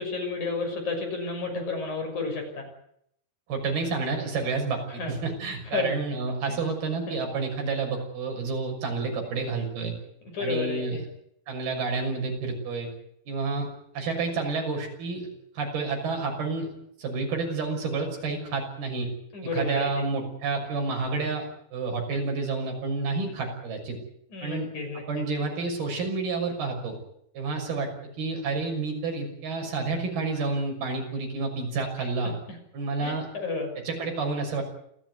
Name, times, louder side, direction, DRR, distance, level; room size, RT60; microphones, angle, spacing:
voice 1, 0.0-2.7 5.0-5.1 5.7-5.9 6.5-6.6 7.1-7.2 10.3-11.0 19.3-20.1 24.3-25.3 32.0-32.1 33.0-33.7, left 3 dB, 50° left, 4 dB, 7.7 m, -31 dB
voice 2, 3.5-9.9 10.4-11.0 11.5-12.9 13.3-13.7 13.9-15.3 15.5-16.7 17.0-19.1 19.5-24.0 24.4-24.7 25.1-27.0 27.3-27.9 28.2-32.3 32.7-33.3 33.8-34.6, right 4 dB, 80° right, 2 dB, 8.2 m, -29 dB
28.0 x 15.5 x 9.8 m, 0.72 s
omnidirectional pair, 4.3 m